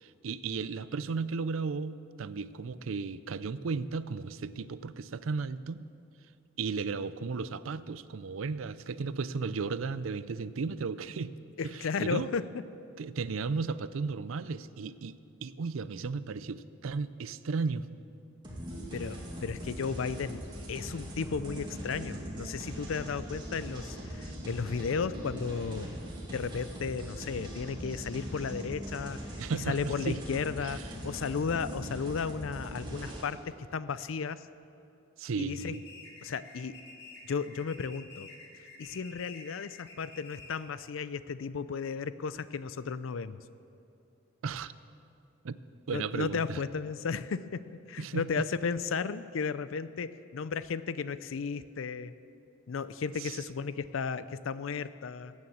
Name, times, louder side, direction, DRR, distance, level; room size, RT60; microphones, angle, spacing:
voice 1, 0.0-5.9 6.6-11.3 11.6-12.3 13.0-17.9 29.4-30.2 30.6-30.8 35.2-35.8 44.4-44.7 45.4-45.6 45.9-46.6 48.0-48.4 53.2-53.4, right 4 dB, 85° right, 15 dB, 0.5 m, -35 dB
voice 2, 11.6-12.4 18.9-20.4 20.7-25.9 26.3-29.2 29.5-33.4 33.7-34.4 35.4-35.7 36.2-36.7 37.3-38.3 38.8-43.4 45.9-47.6 47.9-52.1 52.7-55.3, left 5 dB, 85° left, 15 dB, 0.5 m, -34 dB
sound 1, 18.4-33.2, equal, 25° right, 2.5 m, -41 dB
sound 2, 35.5-40.8, left 3 dB, 55° left, 2.2 m, -50 dB
15.5 x 9.6 x 7.2 m, 2.7 s
head